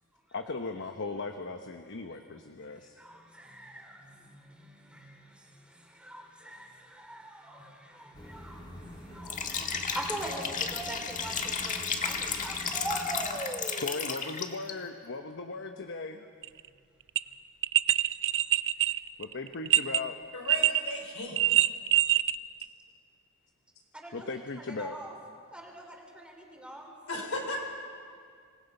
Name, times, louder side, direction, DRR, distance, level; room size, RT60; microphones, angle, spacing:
voice 1, 0.3-3.0 13.8-16.2 19.2-20.2 24.1-25.0, left 3 dB, 60° left, 6 dB, 0.9 m, -37 dB
voice 2, 2.7-13.9 23.9-25.1 25.5-26.9, right 1 dB, 5° right, 1 dB, 3.2 m, -42 dB
sound 1, 8.1-13.4, left 1 dB, 20° left, 2.4 m, -46 dB
Liquid, 9.2-14.7, left 5 dB, 35° left, 1.5 m, -33 dB
sound 2, 16.4-16.6 17.2-17.3 17.6-20.0 20.5-21.0 21.2-22.3 22.6-22.7, right 13 dB, 60° right, 0.5 m, -24 dB
voice 3, 20.3-21.5 27.1-27.6, left 2 dB, 75° left, 1 dB, 4.7 m, -36 dB
26.5 x 19.5 x 5.5 m, 2.2 s
head